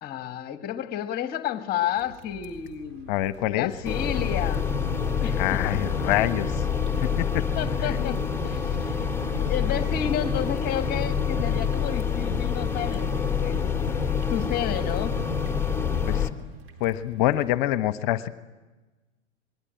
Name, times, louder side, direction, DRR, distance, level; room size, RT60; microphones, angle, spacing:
voice 1, 0.0-3.1 3.5-4.6 5.2-5.6 7.6-9.1 9.4-13.6 14.3-15.2, left 10 dB, 25° left, 9 dB, 1.7 m, -31 dB
sound 1, 1.9-17.6, right 3 dB, 35° right, 4.1 m, -48 dB
voice 2, 3.1-3.7 5.3-6.7 7.0-7.5 7.8-8.1 16.1-16.3 16.8-18.3, left 14 dB, 40° left, 13 dB, 1.2 m, -26 dB
sound 2, 3.8-16.3, left 6 dB, 5° left, 1.8 m, -27 dB
27.5 x 21.0 x 9.1 m, 1.2 s
figure-of-eight pair, 100°, 36 cm